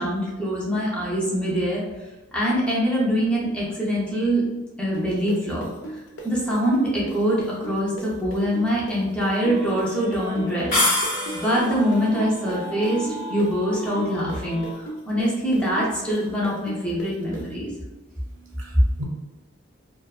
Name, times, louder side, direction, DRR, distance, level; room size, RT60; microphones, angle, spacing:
voice 1, 0.0-1.8 2.3-4.5 4.8-5.7 6.2-10.8 11.3-17.7, equal, 5° left, -6 dB, 0.6 m, -24 dB
sound 1, 4.9-12.6 12.8-17.4, right 1 dB, 60° left, 0.4 m, -35 dB
sound 2, 9.4-10.8 11.1-14.7, equal, 25° right, 0.8 m, -37 dB
sound 3, 10.7-11.8, left 2 dB, 40° left, 0.8 m, -23 dB
voice 2, 18.1-19.0, equal, 70° right, 0 dB, 0.6 m, -40 dB
2.6 x 2.2 x 2.3 m, 1.1 s
head